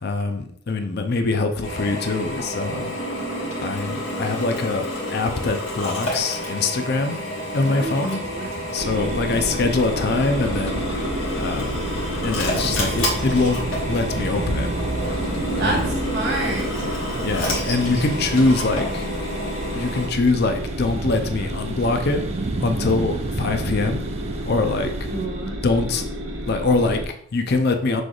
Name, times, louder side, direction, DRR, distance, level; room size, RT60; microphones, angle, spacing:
voice 1, 0.0-2.9 3.6-7.2 7.5-8.2 8.7-10.8 11.4-11.8 12.2-13.6 13.9-14.7 15.6-15.9 17.2-19.1 19.7-22.2 22.6-24.9 25.6-26.1 26.5-28.0, left 3 dB, 50° left, 6 dB, 0.5 m, -23 dB
Drill, 1.6-20.1, left 1 dB, 75° left, 1.3 m, -29 dB
voice 2, 7.6-8.5 15.6-16.7 17.1-17.2 24.6-25.6, right 2 dB, 55° right, -1 dB, 1.1 m, -29 dB
sound 1, 8.2-25.3, right 3 dB, 30° right, 0.3 m, -33 dB
sound 2, 8.8-27.0, equal, 80° right, 0.8 m, -31 dB
6.0 x 3.3 x 2.4 m, 0.63 s
head